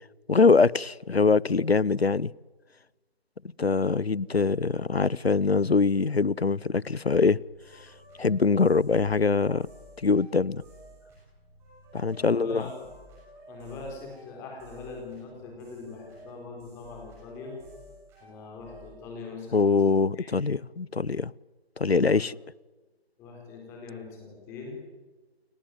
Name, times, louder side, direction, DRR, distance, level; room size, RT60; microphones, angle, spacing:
voice 1, 0.3-2.3 3.6-7.4 8.2-9.7 10.0-10.6 11.9-12.7 19.5-21.3 21.8-22.4, left 4 dB, 75° left, 0.8 m, -23 dB
sound 1, 7.1-19.0, right 1 dB, 10° right, 6.9 m, -52 dB
voice 2, 12.1-12.9 13.5-17.6 18.2-20.4 22.1-22.3 23.2-24.8, left 4 dB, 10° left, 4.2 m, -42 dB
29.5 x 21.0 x 9.4 m
figure-of-eight pair, 155°, 32 cm